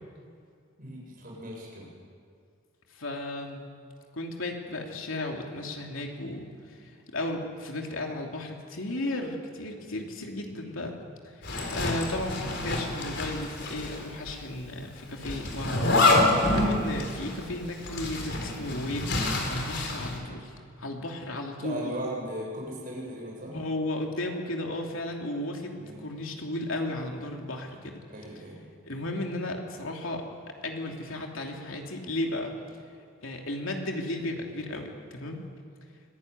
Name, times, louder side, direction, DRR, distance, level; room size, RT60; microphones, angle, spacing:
voice 1, 0.8-1.9 12.4-12.5 21.6-23.6 25.8-26.1 28.1-28.6 28.9-29.0, right 1 dB, 45° right, -3 dB, 7.4 m, -38 dB
voice 2, 2.9-3.6 4.1-11.0 11.4-20.5 20.8-22.0 23.5-28.0 28.8-30.2 30.6-32.5 33.2-35.4, left 1 dB, 75° left, 1 dB, 3.0 m, -34 dB
Zipper (clothing), 11.4-14.0 14.3-14.4 15.2-20.2, left 2 dB, 55° left, 4.1 m, -27 dB
25.5 x 15.5 x 9.6 m, 2.2 s
head